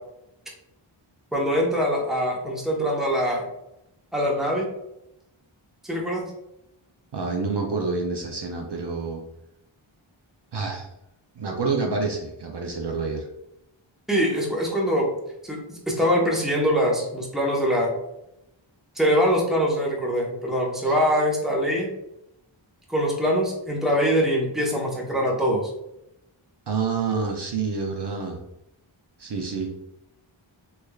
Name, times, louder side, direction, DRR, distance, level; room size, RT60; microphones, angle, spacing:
voice 1, 1.3-3.4 4.1-4.7 5.8-6.2 14.1-15.1 15.4-17.9 19.0-21.9 22.9-25.6, equal, ahead, -2 dB, 0.9 m, -23 dB
voice 2, 7.1-9.2 10.5-10.9 11.4-13.3 20.8-21.0 26.7-28.4 29.2-29.7, right 4 dB, 55° right, 1 dB, 0.6 m, -28 dB
3.3 x 3.2 x 2.3 m, 0.84 s
wide cardioid pair, 55°, 49 cm